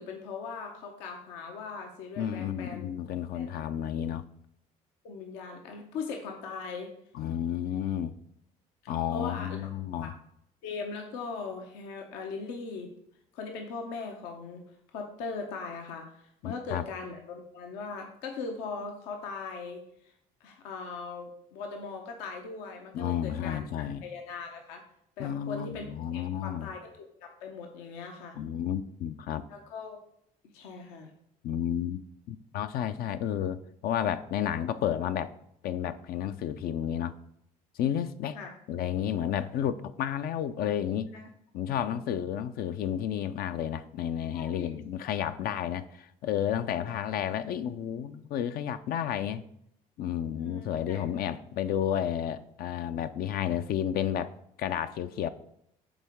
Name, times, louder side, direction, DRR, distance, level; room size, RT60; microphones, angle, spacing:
voice 1, 0.0-2.9 3.3-3.7 4.1-4.2 5.0-6.9 8.8-9.6 10.0-10.1 10.6-12.9 13.3-14.6 14.9-20.1 20.4-24.8 25.2-28.4 29.5-30.0 30.5-31.1 38.3-38.5 41.1-41.3 41.8-42.0 44.3-45.1 46.7-46.9 50.3-51.0, left 4 dB, 85° left, 3 dB, 0.9 m, -40 dB
voice 2, 2.2-4.2 7.1-8.2 8.9-10.1 16.4-16.8 22.9-24.0 25.2-26.7 28.4-29.4 31.4-32.0 32.3-35.3 35.6-37.1 37.8-38.4 38.7-41.1 41.5-49.4 50.0-54.3 54.6-55.3, left 10 dB, 60° left, 11 dB, 0.4 m, -31 dB
7.2 x 3.8 x 3.5 m, 0.73 s
supercardioid pair, 75°, 17 cm